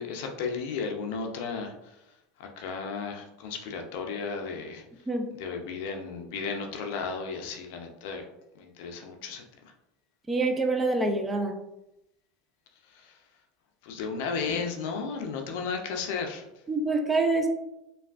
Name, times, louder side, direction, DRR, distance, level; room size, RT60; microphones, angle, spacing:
voice 1, 0.0-1.9 2.4-4.8 5.3-8.2 8.6-9.4 12.9-13.2 13.8-16.4, left 5 dB, 70° left, 3 dB, 0.5 m, -34 dB
voice 2, 10.3-11.5 16.7-17.5, right 3 dB, 15° right, 3 dB, 0.4 m, -26 dB
3.3 x 2.3 x 2.4 m, 0.88 s
hypercardioid pair, 95°, 0 cm